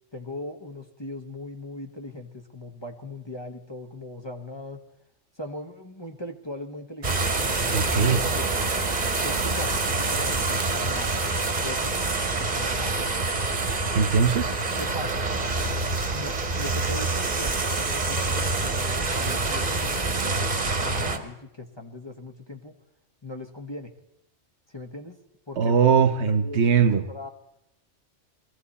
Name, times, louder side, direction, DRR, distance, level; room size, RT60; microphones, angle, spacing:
voice 1, 0.1-4.8 5.4-8.5 9.2-11.2 11.6-12.0 12.4-13.0 14.8-15.2 16.1-22.8 23.2-23.9 24.7-25.2 25.5-25.8 26.3-26.6 27.1-27.3, left 1 dB, 25° left, 4 dB, 1.0 m, -39 dB
sound 1, 7.0-21.2, right 3 dB, 35° right, 1.3 m, -26 dB
voice 2, 7.7-8.2 13.9-14.5 25.6-27.0, right 6 dB, 65° right, 10 dB, 1.2 m, -20 dB
21.5 x 15.0 x 4.2 m, 0.82 s
omnidirectional pair, 1.2 m